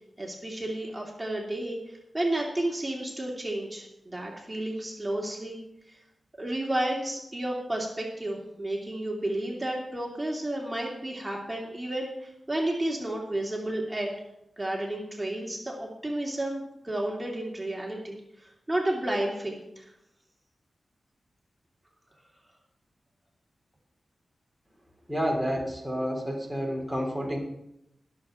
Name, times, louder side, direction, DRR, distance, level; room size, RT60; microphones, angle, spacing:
voice 1, 0.2-5.6 5.9-6.0 6.4-14.1 14.6-19.9, right 1 dB, 15° right, -2 dB, 2.8 m, -32 dB
voice 2, 25.1-27.4, equal, 10° left, 0 dB, 3.1 m, -29 dB
21.5 x 7.3 x 3.8 m, 0.83 s
cardioid pair, 60°, 0 cm